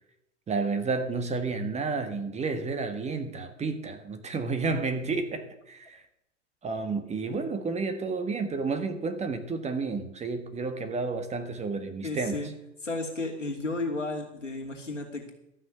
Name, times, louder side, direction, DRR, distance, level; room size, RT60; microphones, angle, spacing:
voice 1, 0.5-6.0 6.6-12.4, right 4 dB, 20° right, 1.4 m, -31 dB
voice 2, 12.0-12.5 12.8-15.3, left 2 dB, 85° left, 2.7 m, -33 dB
13.0 x 6.5 x 8.1 m
figure-of-eight pair, 85°, 36 cm